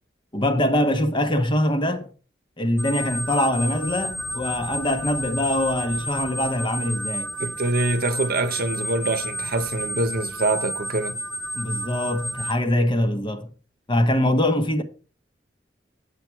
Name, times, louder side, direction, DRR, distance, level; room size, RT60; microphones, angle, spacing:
voice 1, 0.3-2.1 2.6-7.3 11.5-13.5 13.9-14.8, left 1 dB, 25° left, 1.0 m, -23 dB
sound 1, 2.8-12.5, right 1 dB, ahead, 0.5 m, -31 dB
voice 2, 7.4-11.2, right 2 dB, 55° right, 0.9 m, -25 dB
8.5 x 7.5 x 4.6 m
head